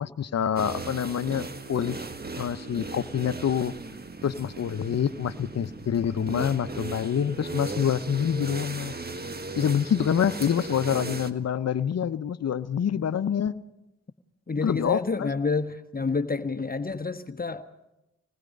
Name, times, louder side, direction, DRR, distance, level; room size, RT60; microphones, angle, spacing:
voice 1, 0.0-1.4 1.7-2.0 2.4-3.7 4.2-8.9 9.6-13.5 14.6-15.3, left 8 dB, 55° left, 13 dB, 0.9 m, -26 dB
sound 1, 0.5-11.3, right 3 dB, 30° right, 1.5 m, -37 dB
voice 2, 14.5-17.7, left 4 dB, 30° left, 7 dB, 1.3 m, -29 dB
26.5 x 20.0 x 5.4 m, 0.93 s
supercardioid pair, 45°, 32 cm